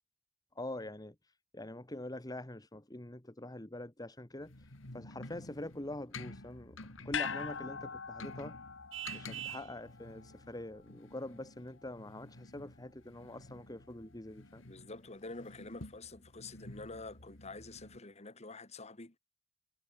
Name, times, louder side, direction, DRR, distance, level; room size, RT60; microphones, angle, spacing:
voice 1, 0.5-1.1 1.5-4.5 4.9-6.8 7.0-8.6 9.1-14.6, left 1 dB, 20° left, 1.5 m, -44 dB
sound 1, 4.4-18.0, left 2 dB, 85° left, 2.9 m, -51 dB
sound 2, 7.1-11.5 11.8-11.9, left 7 dB, 65° left, 1.5 m, -42 dB
Vehicle horn car horn honking, 8.9-9.7, right 11 dB, 85° right, 2.3 m, -42 dB
voice 2, 14.6-19.2, left 3 dB, 35° left, 2.2 m, -47 dB
head